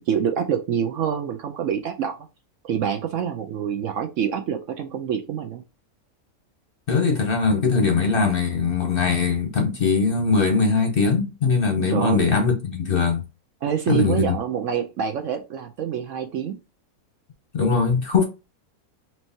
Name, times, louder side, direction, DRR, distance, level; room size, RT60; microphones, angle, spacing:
voice 1, 0.0-2.1 2.6-5.6 11.9-12.2 13.6-16.6, right 8 dB, 70° right, 0.8 m, -26 dB
voice 2, 6.9-13.2 13.9-14.4 17.5-18.2, left 4 dB, 45° left, 0.8 m, -21 dB
4.4 x 3.1 x 2.7 m
omnidirectional pair, 1.6 m